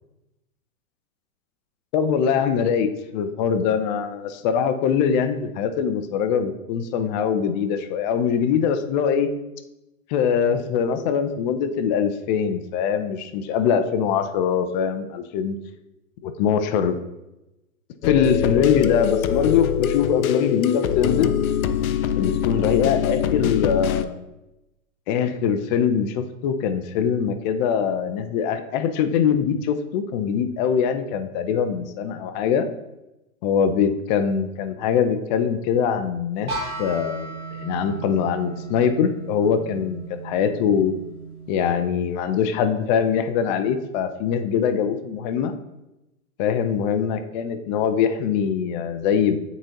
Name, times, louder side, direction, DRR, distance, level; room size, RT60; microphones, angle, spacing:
voice 1, 1.9-9.3 10.1-15.6 16.2-17.0 18.0-21.3 22.2-24.2 25.1-32.7 33.4-36.5 36.8-37.3 37.6-40.9 41.5-45.5 46.4-49.4, left 7 dB, 35° left, 9 dB, 0.5 m, -22 dB
sound 1, 18.0-24.0, left 9 dB, 80° left, 0.6 m, -23 dB
sound 2, 36.5-42.3, right 4 dB, 85° right, 1.5 m, -35 dB
8.5 x 4.0 x 2.8 m, 0.95 s
hypercardioid pair, 115°, 42 cm